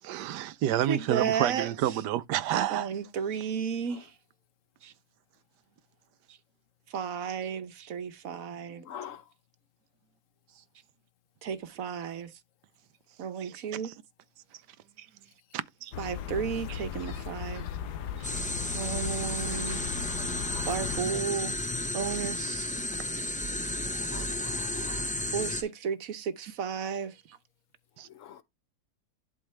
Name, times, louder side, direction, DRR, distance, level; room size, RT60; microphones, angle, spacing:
voice 1, 0.0-2.9 13.4-13.9 15.5-15.9 22.9-23.0 24.2-24.5 28.0-28.1, right 12 dB, 90° right, 1.3 m, -30 dB
voice 2, 0.9-2.0 2.7-4.1 4.8-4.9 6.9-8.9 11.4-12.3 13.2-13.9 16.0-17.7 18.2-18.3 18.7-19.8 20.7-21.5 21.9-22.7 25.3-27.4, right 7 dB, 60° right, 1.2 m, -33 dB
voice 3, 8.9-9.2 20.5-20.7 24.1-25.0 28.2-28.4, left 10 dB, 55° left, 1.1 m, -44 dB
sound 1, 15.9-21.0, left 9 dB, 80° left, 1.4 m, -37 dB
sound 2, 18.2-25.6, left 1 dB, 10° left, 0.3 m, -33 dB
11.5 x 3.9 x 3.3 m
omnidirectional pair, 1.7 m